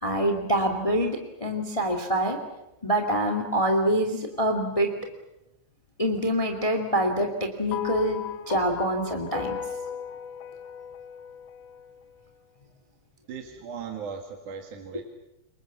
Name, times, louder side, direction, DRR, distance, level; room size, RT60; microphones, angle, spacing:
voice 1, 0.0-2.4 2.8-4.9 6.0-9.6, right 1 dB, 10° left, 5 dB, 2.1 m, -25 dB
sound 1, 7.7-12.1, left 9 dB, 85° left, 2.7 m, -35 dB
voice 2, 13.3-15.0, right 6 dB, 75° right, 3 dB, 3.5 m, -37 dB
28.0 x 24.0 x 7.3 m, 0.91 s
omnidirectional pair, 3.5 m